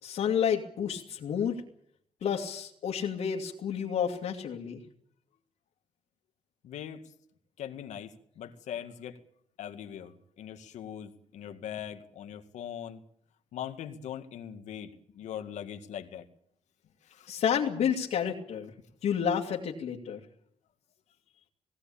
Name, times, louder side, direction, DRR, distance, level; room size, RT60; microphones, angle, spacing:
voice 1, 0.0-1.6 2.2-4.8 17.3-18.7 19.0-20.2, left 8 dB, 70° left, -2 dB, 2.5 m, -30 dB
voice 2, 6.6-7.0 7.6-9.2 9.6-13.0 13.5-16.3 17.0-17.3, left 9 dB, 85° left, 7 dB, 2.1 m, -41 dB
19.5 x 18.0 x 8.7 m, 0.66 s
wide cardioid pair, 165°, 12 cm